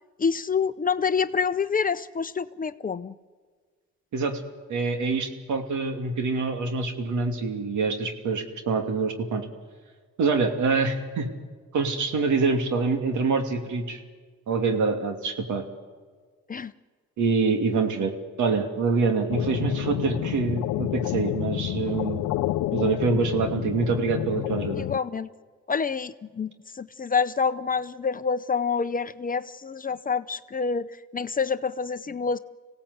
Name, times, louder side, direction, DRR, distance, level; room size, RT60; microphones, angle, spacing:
voice 1, 0.2-3.1 16.5-16.7 24.8-25.3 25.7-30.9 31.1-32.4, left 5 dB, 30° left, 13 dB, 0.7 m, -27 dB
voice 2, 4.7-9.5 10.2-11.3 11.7-14.0 14.5-15.6 17.2-18.1 18.4-22.3 22.7-24.8, right 4 dB, 75° right, 5 dB, 2.8 m, -25 dB
sound 1, 19.3-25.0, left 15 dB, 85° left, 0.6 m, -29 dB
26.0 x 17.5 x 8.1 m, 1.5 s
cardioid pair, 90°, 30 cm